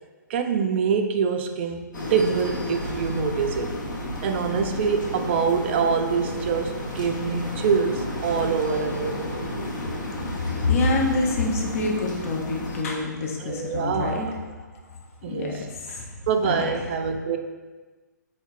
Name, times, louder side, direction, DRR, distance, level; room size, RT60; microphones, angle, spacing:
voice 1, 0.3-3.8 4.2-9.3 13.4-14.4 15.2-15.7 16.3-17.4, right 6 dB, 35° right, 6 dB, 0.3 m, -25 dB
sound 1, 1.9-12.8, left 1 dB, 75° left, 0.8 m, -32 dB
voice 2, 10.4-14.3 14.7-14.9 15.3-16.1 16.4-16.7, left 3 dB, 45° left, 0 dB, 0.5 m, -26 dB
3.5 x 2.2 x 4.3 m, 1.3 s
figure-of-eight pair, 135°, 10 cm